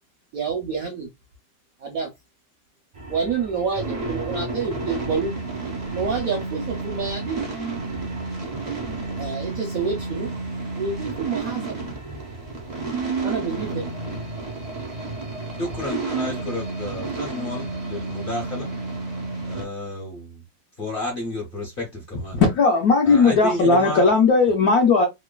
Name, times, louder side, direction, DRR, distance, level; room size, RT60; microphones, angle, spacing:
voice 1, 0.3-1.1 1.8-2.1 3.1-5.3 5.9-7.4 9.2-10.3 10.7-11.8 13.2-13.9, right 5 dB, 70° right, 0.8 m, -28 dB
sound 1, 2.9-19.6, right 3 dB, 40° right, 0.5 m, -31 dB
voice 2, 15.6-18.7 19.4-20.4 20.8-22.4 23.0-24.0, left 1 dB, 45° left, 0.7 m, -31 dB
voice 3, 22.3-25.1, left 4 dB, 70° left, 0.9 m, -17 dB
3.1 x 2.0 x 2.2 m
omnidirectional pair, 2.1 m